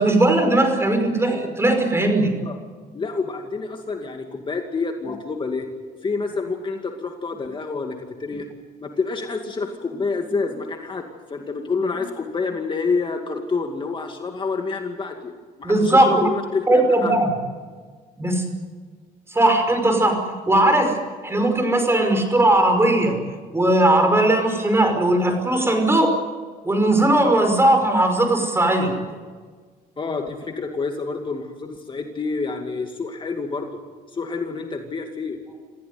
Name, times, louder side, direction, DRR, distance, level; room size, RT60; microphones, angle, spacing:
voice 1, 0.0-2.3 15.6-16.1 16.7-17.3 18.2-18.5 19.3-23.2 23.5-26.1 26.6-29.0, right 1 dB, 15° right, 5 dB, 5.4 m, -18 dB
voice 2, 2.9-5.7 6.0-8.5 8.8-15.3 15.6-17.2 30.0-33.7 34.1-35.4, left 4 dB, 30° left, 3 dB, 2.3 m, -28 dB
26.5 x 15.5 x 9.5 m, 1.5 s
cardioid pair, 110°, 17 cm